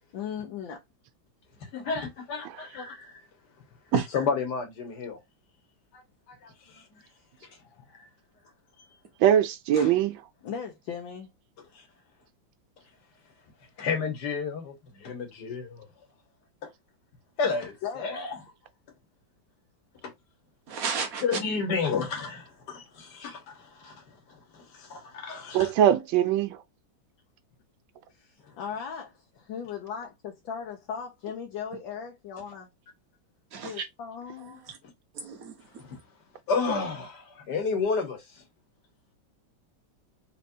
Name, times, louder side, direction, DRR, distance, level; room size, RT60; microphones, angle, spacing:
voice 1, 0.1-0.8 7.7-7.9 8.8-9.0 10.4-11.3 17.4-18.3 28.2-32.7 33.6-34.6, left 7 dB, 75° left, 1.6 m, -38 dB
voice 2, 1.7-3.2 4.1-5.2 5.9-6.0 6.3-7.0 8.0-8.1 9.7-9.9 11.7-11.8 13.8-15.9 17.4-18.4 21.2-25.7 35.8-36.0 36.5-38.4, left 5 dB, 60° left, 1.9 m, -31 dB
voice 3, 9.2-10.2 25.5-26.6, right 10 dB, 80° right, 1.4 m, -22 dB
voice 4, 20.7-21.2 33.5-33.8 35.2-35.5, right 6 dB, 55° right, 1.2 m, -30 dB
4.3 x 3.3 x 2.6 m
omnidirectional pair, 2.1 m